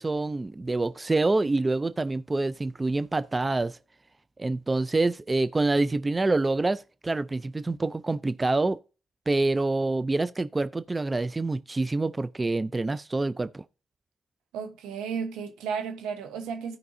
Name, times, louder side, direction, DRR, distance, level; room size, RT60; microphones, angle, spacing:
voice 1, 0.0-3.8 4.4-8.8 9.3-13.6, right 2 dB, 30° right, 0.5 m, -26 dB
voice 2, 14.5-16.8, right 6 dB, 90° right, 1.1 m, -33 dB
15.5 x 5.2 x 2.7 m
supercardioid pair, 45°, 0 cm